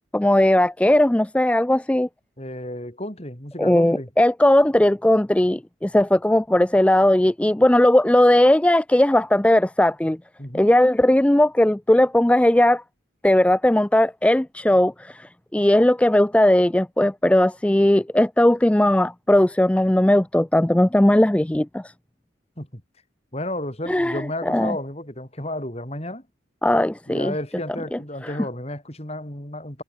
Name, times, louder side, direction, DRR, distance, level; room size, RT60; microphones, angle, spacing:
voice 1, 0.1-2.1 3.6-10.2 10.5-12.8 13.2-21.9 23.9-24.8 26.6-27.3 27.9-28.3, left 1 dB, 5° left, 0.3 m, -18 dB
voice 2, 2.4-4.1 10.4-10.7 22.6-22.8 23.3-26.3 27.1-29.8, left 1 dB, 30° left, 5.6 m, -32 dB
head